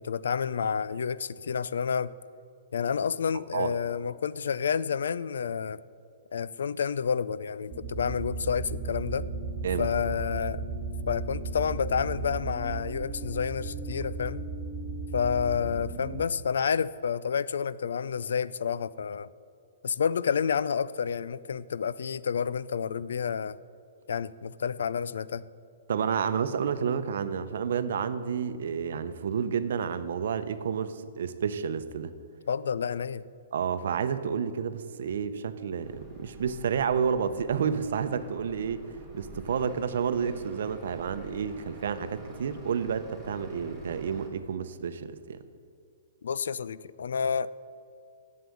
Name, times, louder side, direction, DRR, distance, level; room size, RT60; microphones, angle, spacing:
voice 1, 0.0-2.1 2.7-5.8 6.3-9.3 9.8-10.6 11.1-14.5 15.1-19.3 19.8-23.6 24.1-25.5 32.5-33.2 46.2-47.5, left 7 dB, 80° left, 18 dB, 0.3 m, -29 dB
sound 1, 7.7-16.3, right 3 dB, 25° right, 1.4 m, -35 dB
voice 2, 25.9-32.1 33.5-45.4, right 7 dB, 70° right, 11 dB, 0.7 m, -30 dB
sound 2, 35.8-44.3, right 2 dB, 10° left, 2.4 m, -47 dB
7.8 x 7.6 x 8.3 m, 2.5 s
hypercardioid pair, 145°, 0 cm